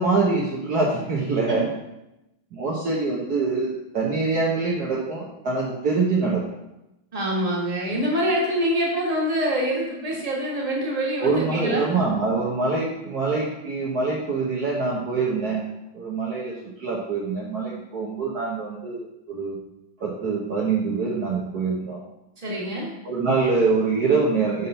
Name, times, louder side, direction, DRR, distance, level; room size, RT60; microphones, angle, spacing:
voice 1, 0.0-1.7 2.5-6.4 11.2-15.6 15.9-19.6 20.0-22.0 23.0-24.7, right 4 dB, 55° right, -4 dB, 1.5 m, -24 dB
voice 2, 7.1-11.9 22.4-22.9, equal, 20° right, -3 dB, 1.7 m, -25 dB
8.1 x 3.7 x 5.5 m, 0.90 s
omnidirectional pair, 2.2 m